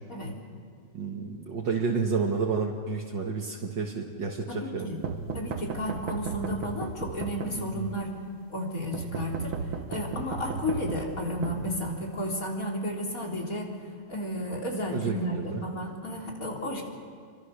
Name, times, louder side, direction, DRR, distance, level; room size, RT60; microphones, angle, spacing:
voice 1, 0.9-4.9 7.6-7.9 14.9-15.6, right 5 dB, 65° right, -1 dB, 2.2 m, -30 dB
voice 2, 4.5-5.0 5.3-8.2 8.5-9.6 9.9-13.7 14.1-16.8, left 1 dB, 40° left, -1 dB, 3.9 m, -32 dB
sound 1, 5.0-8.0 8.9-12.3, right 5 dB, 85° right, 2.2 m, -35 dB
29.0 x 25.0 x 6.5 m, 2.1 s
omnidirectional pair, 2.2 m